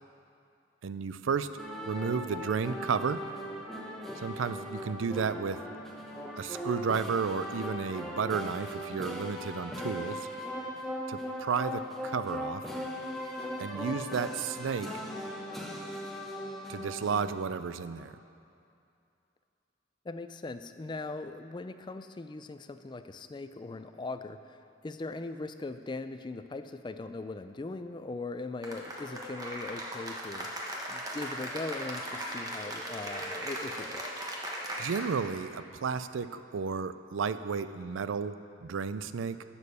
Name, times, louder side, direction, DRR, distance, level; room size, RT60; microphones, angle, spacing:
voice 1, 0.8-1.5 1.9-3.2 4.1-5.6 6.4-10.3 11.1-12.6 13.6-15.0 16.7-18.1 34.8-39.4, right 6 dB, 90° right, 13 dB, 0.4 m, -32 dB
sound 1, 1.6-17.3, left 1 dB, ahead, 1.0 m, -39 dB
voice 2, 20.0-34.3, left 3 dB, 25° left, 10 dB, 0.3 m, -40 dB
Cheering / Applause, 28.6-35.3, right 1 dB, 20° right, 1.2 m, -38 dB
11.0 x 7.2 x 6.8 m, 2.6 s
head